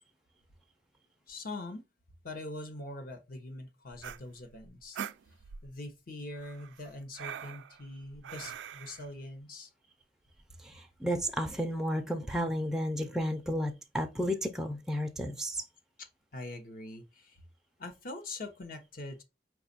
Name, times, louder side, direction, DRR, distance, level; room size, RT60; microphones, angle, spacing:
voice 1, 1.3-1.8 2.2-5.0 5.6-9.7 16.0-17.4 17.8-19.2, left 2 dB, 55° left, 0.8 m, -43 dB
sound 1, 3.9-5.8 6.4-9.1, right 8 dB, 90° right, 0.4 m, -43 dB
voice 2, 10.6-15.6, equal, 5° right, 0.4 m, -32 dB
5.0 x 2.4 x 3.9 m
head